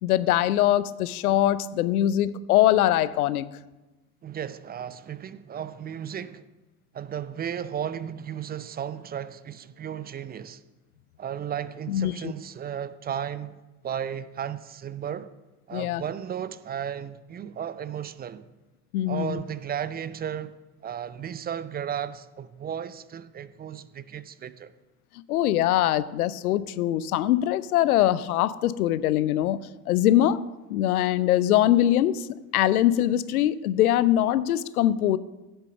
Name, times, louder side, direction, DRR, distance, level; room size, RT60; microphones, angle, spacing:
voice 1, 0.0-3.5 11.9-12.3 15.7-16.0 18.9-19.4 25.3-30.4 30.7-32.2 32.5-35.2, left 13 dB, 70° left, 0.7 m, -22 dB
voice 2, 4.2-6.4 6.9-10.6 11.2-13.6 13.8-15.3 15.7-18.5 19.1-24.7, right 9 dB, 20° right, 0.6 m, -34 dB
16.0 x 6.8 x 5.9 m
figure-of-eight pair, 65°, 46 cm